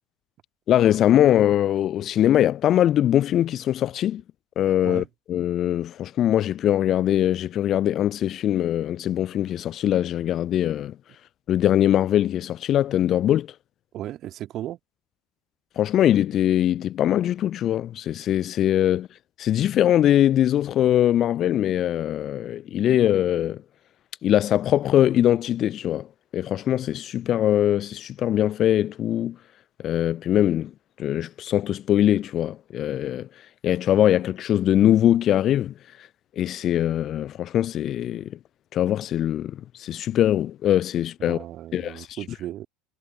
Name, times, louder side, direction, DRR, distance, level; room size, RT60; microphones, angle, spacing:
voice 1, 0.7-4.2 4.6-10.9 11.5-13.5 15.8-19.1 19.4-23.6 24.2-26.1 26.3-29.4 29.8-30.7 31.0-33.3 33.6-35.7 36.4-38.4 38.7-41.4 41.7-42.2, left 11 dB, 40° left, 0.4 m, -22 dB
voice 2, 13.9-14.8 41.2-42.7, right 13 dB, 40° right, 2.1 m, -35 dB
figure-of-eight pair, 70°, 0 cm